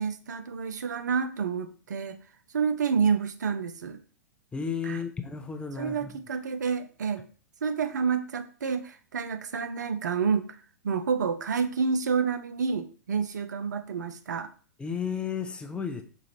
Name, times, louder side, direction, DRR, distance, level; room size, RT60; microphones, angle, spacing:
voice 1, 0.0-2.2 2.5-4.0 4.8-5.0 5.8-7.2 7.6-10.6 10.8-14.5, right 6 dB, 75° right, 9 dB, 0.4 m, -29 dB
voice 2, 4.5-6.2 14.8-16.0, left 6 dB, 10° left, 5 dB, 0.5 m, -33 dB
4.6 x 2.4 x 2.8 m, 0.39 s
figure-of-eight pair, 105°, 10 cm